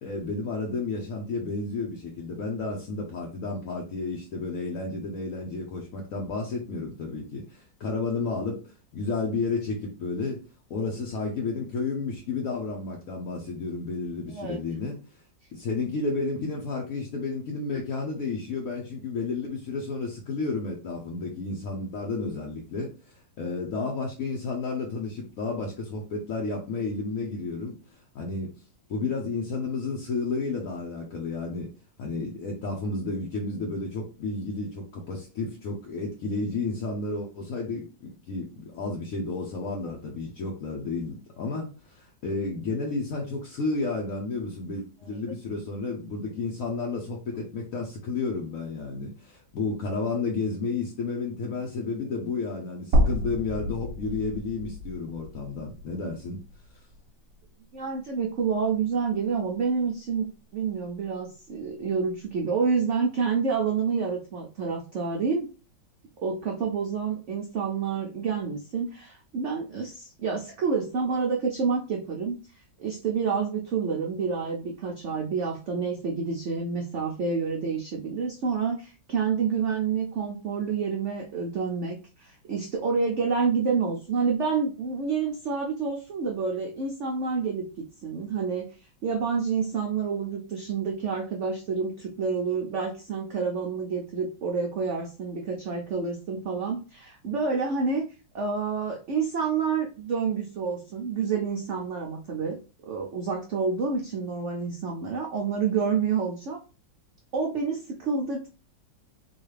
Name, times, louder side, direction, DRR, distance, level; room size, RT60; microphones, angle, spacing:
voice 1, 0.0-10.4 10.7-15.1 15.5-28.5 28.9-31.7 32.0-56.4, left 3 dB, 60° left, -1 dB, 0.9 m, -32 dB
sound 1, 52.9-57.1 57.4-57.5 59.0-59.1, equal, 55° right, 1.3 m, -29 dB
voice 2, 57.7-60.3 60.5-65.5 66.2-72.4 72.8-87.7 88.0-88.7 89.0-98.0 98.3-102.6 102.9-106.6 107.3-108.5, right 5 dB, 85° right, 1 dB, 0.6 m, -28 dB
3.9 x 2.4 x 3.2 m, 0.33 s
omnidirectional pair, 2.0 m